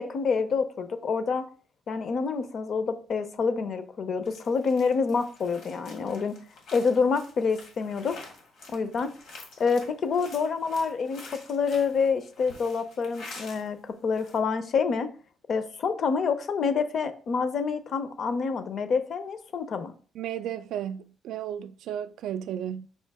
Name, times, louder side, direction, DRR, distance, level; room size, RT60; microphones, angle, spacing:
voice 1, 0.0-1.4 1.9-6.4 6.7-8.2 8.7-9.1 9.6-15.1 15.5-19.9, left 5 dB, 45° left, 0.5 m, -27 dB
sound 1, 4.2-13.7 14.0-14.4, left 3 dB, 85° left, 1.5 m, -48 dB
voice 2, 20.1-22.9, right 10 dB, 90° right, 0.3 m, -34 dB
5.5 x 2.7 x 3.4 m
cardioid pair, 165°, 0 cm